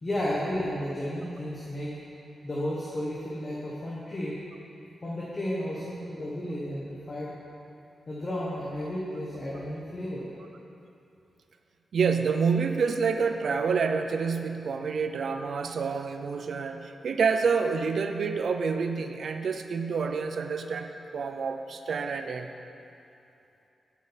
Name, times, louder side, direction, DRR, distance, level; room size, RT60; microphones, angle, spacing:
voice 1, 0.0-2.0 2.4-4.4 5.0-7.4 8.1-10.3, left 1 dB, 30° left, -6 dB, 1.2 m, -33 dB
voice 2, 11.9-22.5, right 5 dB, 65° right, 7 dB, 0.5 m, -28 dB
7.9 x 5.1 x 7.2 m, 2.8 s
wide cardioid pair, 135°, 0 cm